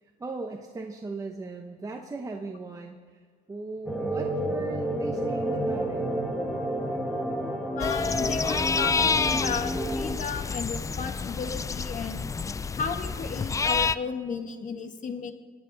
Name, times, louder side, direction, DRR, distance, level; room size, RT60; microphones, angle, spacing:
voice 1, 0.0-6.1, right 3 dB, 20° right, 2 dB, 0.9 m, -38 dB
sound 1, 3.8-10.1, right 1 dB, ahead, 1.7 m, -30 dB
voice 2, 7.8-12.2 12.7-15.3, left 6 dB, 50° left, 7 dB, 1.5 m, -34 dB
sound 2, 7.8-13.9, left 5 dB, 20° left, 0.4 m, -28 dB
26.0 x 9.4 x 4.0 m, 1.5 s
cardioid pair, 110°, 17 cm